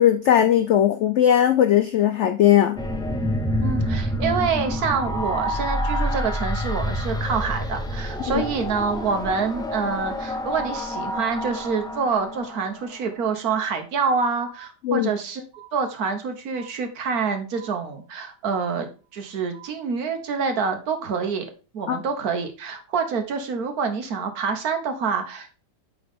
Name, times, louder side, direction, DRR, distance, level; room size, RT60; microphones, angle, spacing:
voice 1, 0.0-2.8 8.3-8.4 14.8-15.1 21.9-22.0, left 10 dB, 75° left, 8 dB, 0.6 m, -18 dB
sound 1, 2.8-13.1, equal, 5° left, 0.6 m, -28 dB
voice 2, 3.6-15.4 15.7-25.5, right 5 dB, 65° right, 7 dB, 1.5 m, -27 dB
sound 2, 11.5-12.3 12.5-13.3 13.5-14.3 14.5-15.3 15.5-16.3 16.5-17.3 17.5-18.3 18.5-19.3 19.5-20.3, right 11 dB, 45° right, 2.1 m, -49 dB
8.8 x 3.8 x 3.6 m, 0.33 s
omnidirectional pair, 1.8 m